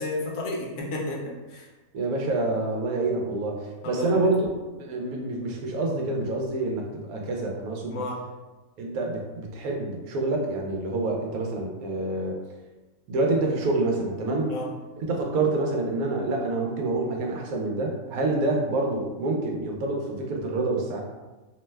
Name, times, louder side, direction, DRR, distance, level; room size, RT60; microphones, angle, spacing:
voice 1, 0.0-1.7 3.8-4.1 7.9-8.2 14.5-14.7, left 2 dB, 70° left, -2 dB, 0.9 m, -32 dB
voice 2, 1.9-4.5 4.7-8.0 8.8-12.4 13.1-14.6 15.0-21.0, right 2 dB, 85° right, 0 dB, 1.0 m, -27 dB
2.7 x 2.1 x 3.2 m, 1.2 s
omnidirectional pair, 1.5 m